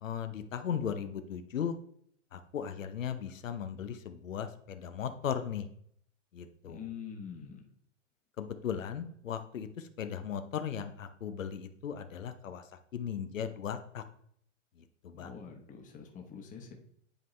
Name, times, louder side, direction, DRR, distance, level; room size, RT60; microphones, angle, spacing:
voice 1, 0.0-1.8 2.3-5.7 6.3-6.8 8.4-12.6 12.9-14.0 15.0-15.3, left 8 dB, 90° left, 8 dB, 0.8 m, -37 dB
voice 2, 6.6-7.7 15.1-16.7, left 7 dB, 20° left, 3 dB, 1.1 m, -45 dB
10.5 x 3.7 x 3.2 m, 0.67 s
hypercardioid pair, 125°, 38 cm